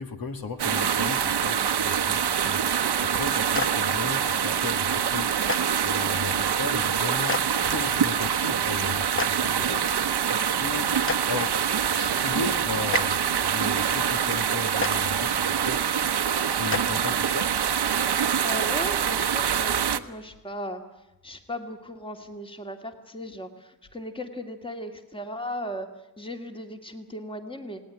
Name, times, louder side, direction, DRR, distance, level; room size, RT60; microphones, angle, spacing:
voice 1, 0.0-16.2 16.5-17.6, left 4 dB, 60° left, 2.3 m, -36 dB
sound 1, 0.6-20.0, right 8 dB, 70° right, 1.1 m, -25 dB
Clapping, 3.5-3.7 5.5-5.6 7.3-7.4 9.2-9.3 11.1-11.2 12.9-13.0 14.8-14.9 16.7-16.8, left 5 dB, 30° left, 0.9 m, -26 dB
voice 2, 18.4-20.8 21.2-25.9 26.2-27.8, equal, 15° left, 2.2 m, -36 dB
28.5 x 19.0 x 10.0 m
wide cardioid pair, 135°, 41 cm